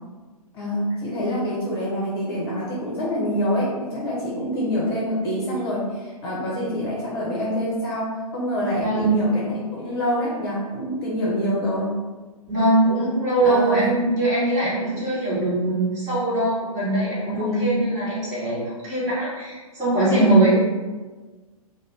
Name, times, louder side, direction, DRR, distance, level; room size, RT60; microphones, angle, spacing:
voice 1, 0.5-11.9 13.4-13.8 17.3-17.7 20.1-20.4, equal, 40° left, -5 dB, 0.8 m, -26 dB
voice 2, 8.8-9.2 12.5-20.5, right 2 dB, 20° right, -10 dB, 1.3 m, -22 dB
2.5 x 2.1 x 3.3 m, 1.3 s
figure-of-eight pair, 115°, 19 cm